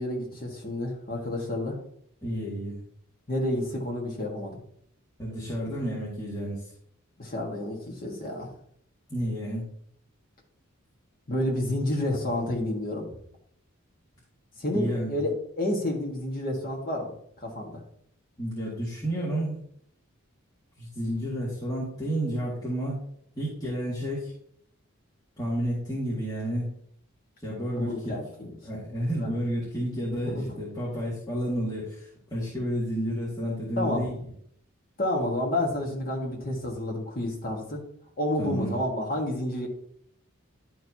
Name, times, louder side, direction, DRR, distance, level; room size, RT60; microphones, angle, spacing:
voice 1, 0.0-1.8 3.3-4.6 7.2-8.5 11.3-13.1 14.6-17.1 17.4-17.8 27.8-28.5 29.2-29.3 30.3-30.4 33.8-34.0 35.0-37.8 38.2-39.7, left 1 dB, 40° left, -1 dB, 1.6 m, -30 dB
voice 2, 2.2-2.8 5.2-6.7 9.1-9.6 14.7-15.1 18.4-19.6 20.8-23.0 23.4-24.3 25.4-26.7 27.4-28.1 28.6-34.2 38.4-38.8, equal, 15° left, -8 dB, 1.8 m, -31 dB
10.5 x 4.6 x 2.8 m, 0.66 s
head